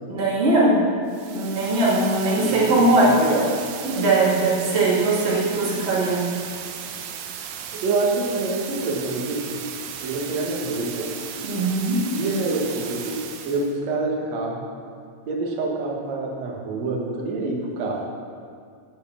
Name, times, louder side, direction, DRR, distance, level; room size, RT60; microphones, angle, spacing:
voice 1, 0.1-0.8 1.3-3.1 3.8-6.2 11.4-12.0, right 2 dB, 35° right, -7 dB, 1.0 m, -20 dB
sound 1, 1.1-13.7, right 8 dB, 80° right, 2.3 m, -36 dB
voice 2, 3.0-3.4 7.7-9.6 10.0-11.1 12.1-13.2 13.4-14.6 15.3-18.0, right 3 dB, 65° right, -2 dB, 1.7 m, -26 dB
8.0 x 7.2 x 7.2 m, 2.2 s
omnidirectional pair, 5.0 m